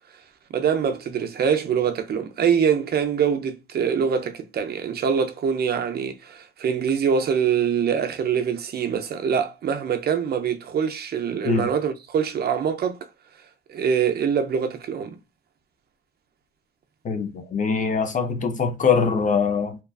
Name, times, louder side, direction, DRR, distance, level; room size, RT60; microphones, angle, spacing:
voice 1, 0.5-13.0 13.7-15.2, right 7 dB, 55° right, 0.5 m, -24 dB
voice 2, 17.0-19.8, left 5 dB, 40° left, 0.6 m, -23 dB
2.9 x 2.2 x 2.3 m
cardioid pair, 90°, 20 cm